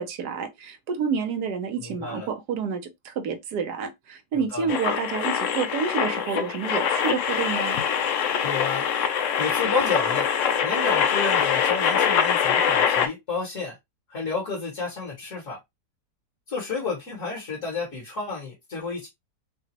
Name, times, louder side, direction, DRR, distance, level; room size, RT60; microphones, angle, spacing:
voice 1, 0.0-7.8, right 6 dB, 65° right, 1.3 m, -29 dB
voice 2, 1.8-2.3 4.3-4.7 8.4-10.3 10.6-13.8 14.1-15.6 16.5-19.1, left 4 dB, 45° left, 2.0 m, -31 dB
sound 1, 4.7-13.1, left 7 dB, 65° left, 0.7 m, -24 dB
5.7 x 2.4 x 2.9 m
omnidirectional pair, 1.9 m